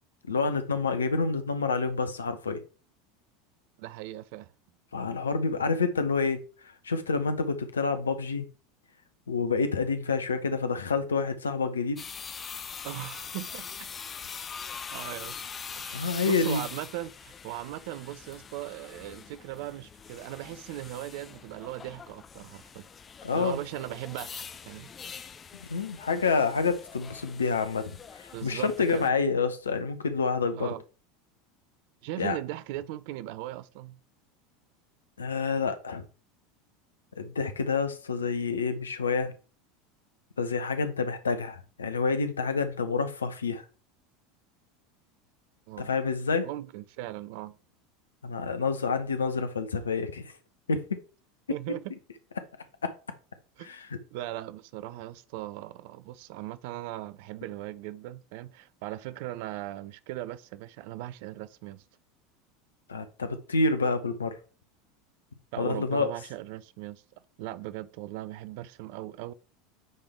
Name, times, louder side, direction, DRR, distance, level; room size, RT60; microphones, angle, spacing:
voice 1, 0.3-2.6 4.9-6.4 6.8-8.5 9.3-12.0 15.9-16.6 23.2-23.6 25.6-27.9 28.2-30.7 32.2-32.4 35.2-36.0 37.2-39.3 40.4-43.6 45.8-46.5 48.2-50.2 50.7-51.0 52.8-52.9 53.6-53.9 62.9-64.4 65.6-66.1, left 4 dB, 75° left, 0.8 m, -28 dB
voice 2, 3.8-4.5 12.8-13.9 14.9-15.4 15.8-22.9 23.3-24.9 28.3-29.1 30.5-30.8 32.0-34.0 45.7-45.9 46.4-47.6 51.5-51.9 53.6-53.7 54.1-61.8 65.5-67.0 67.4-69.3, right 15 dB, 55° right, 0.5 m, -38 dB
sound 1, 12.0-29.1, left 6 dB, 25° left, 0.5 m, -43 dB
9.5 x 3.5 x 3.4 m
figure-of-eight pair, 75°, 0 cm